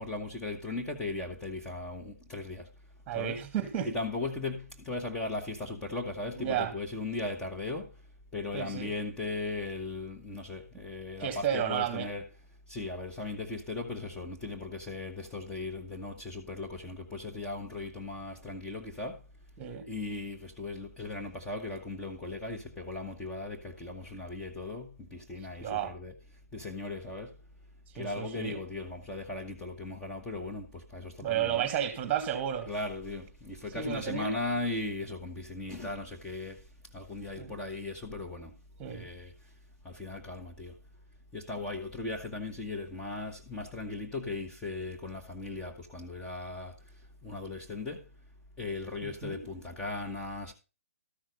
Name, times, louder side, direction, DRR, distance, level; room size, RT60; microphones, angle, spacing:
voice 1, 0.0-2.7 3.1-3.4 3.8-8.0 8.3-12.3 12.7-19.2 19.9-26.1 26.5-27.4 27.9-31.7 32.7-38.5 38.9-39.5 39.8-40.8 41.3-48.1 48.6-50.5, left 3 dB, 10° left, 1.5 m, -38 dB
voice 2, 3.1-3.9 6.4-6.7 8.5-8.9 11.2-12.1 19.6-19.8 25.6-26.0 28.0-28.6 31.2-32.7 33.7-34.3 37.4-37.5 38.8-39.1 49.0-49.5, right 9 dB, 20° right, 2.1 m, -32 dB
13.5 x 6.1 x 5.3 m
figure-of-eight pair, 140°, 8 cm